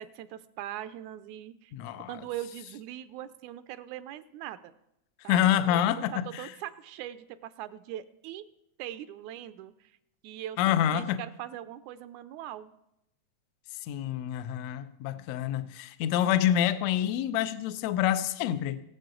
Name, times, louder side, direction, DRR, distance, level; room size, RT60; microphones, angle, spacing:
voice 1, 0.0-1.7 2.1-4.7 5.2-8.4 8.8-10.0 10.2-12.7, right 12 dB, 85° right, 2.0 m, -41 dB
voice 2, 1.7-2.1 5.3-6.5 10.6-11.2 13.8-18.8, left 11 dB, 75° left, 1.7 m, -27 dB
21.5 x 7.6 x 3.8 m
omnidirectional pair, 3.4 m